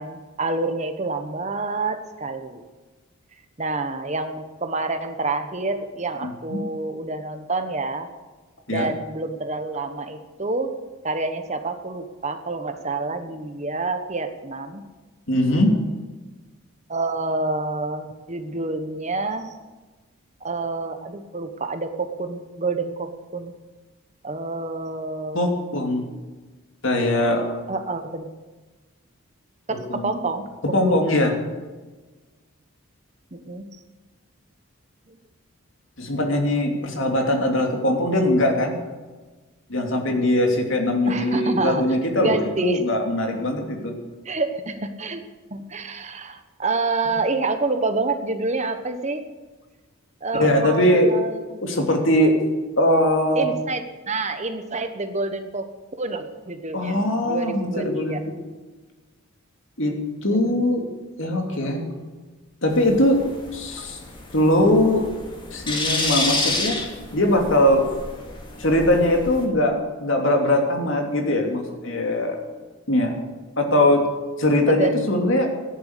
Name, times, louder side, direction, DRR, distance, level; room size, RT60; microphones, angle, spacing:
voice 1, 0.0-2.6 3.6-8.1 8.7-10.8 11.0-14.8 16.9-19.6 20.4-23.5 24.2-25.4 27.7-28.3 29.7-30.5 30.9-31.0 33.3-33.7 35.1-35.2 41.1-41.8 42.1-42.8 44.2-45.2 45.5-49.2 50.2-51.6 53.3-55.7 56.0-58.2 60.3-60.6 74.7-74.9, right 3 dB, 30° right, 8 dB, 1.1 m, -28 dB
voice 2, 6.2-6.6 8.7-8.9 15.3-15.8 25.3-26.1 26.8-27.6 29.9-30.1 30.6-31.3 36.0-38.8 39.7-44.0 50.4-51.1 51.6-52.4 52.8-53.4 56.7-58.2 59.8-59.9 60.2-60.8 61.2-61.8 62.6-63.2 63.5-64.0 64.3-65.0 65.5-66.8 67.1-67.9 68.6-72.4 72.9-73.1 73.6-74.0 74.4-75.5, left 1 dB, 55° left, 2 dB, 2.9 m, -21 dB
sound 1, 62.7-69.5, left 2 dB, 20° left, 2.4 m, -30 dB
14.5 x 10.5 x 8.3 m, 1.3 s
head